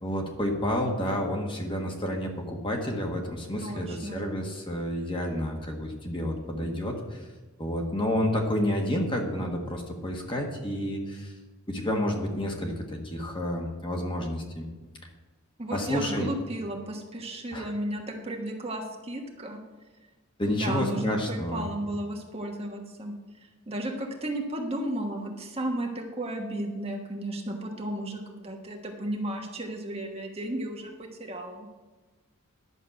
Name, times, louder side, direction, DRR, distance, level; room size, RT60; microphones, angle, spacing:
voice 1, 0.0-7.3 7.6-11.3 11.7-14.6 15.7-16.3 17.5-17.7 20.4-21.7, left 1 dB, 20° left, 1 dB, 1.5 m, -30 dB
voice 2, 3.6-4.2 15.6-19.6 20.5-23.1 23.7-31.7, right 1 dB, 25° right, 2 dB, 1.2 m, -34 dB
11.0 x 6.4 x 7.8 m, 1.2 s
head